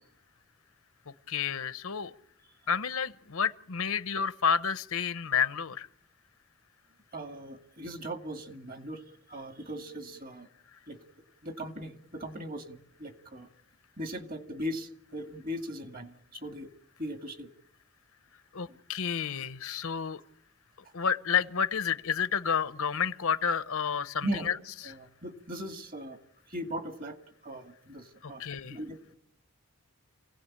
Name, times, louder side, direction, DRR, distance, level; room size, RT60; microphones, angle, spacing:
voice 1, 1.3-2.1 2.7-5.9 18.5-20.2 20.9-24.6 28.4-28.8, left 7 dB, 70° left, 14 dB, 0.9 m, -30 dB
voice 2, 7.1-10.5 10.9-11.0 11.4-13.5 14.0-16.7 17.0-17.5 18.7-18.8 24.2-24.5 24.8-26.2 26.5-27.2 27.4-29.2, equal, 40° right, 6 dB, 2.3 m, -39 dB
27.5 x 17.0 x 8.8 m, 0.75 s
head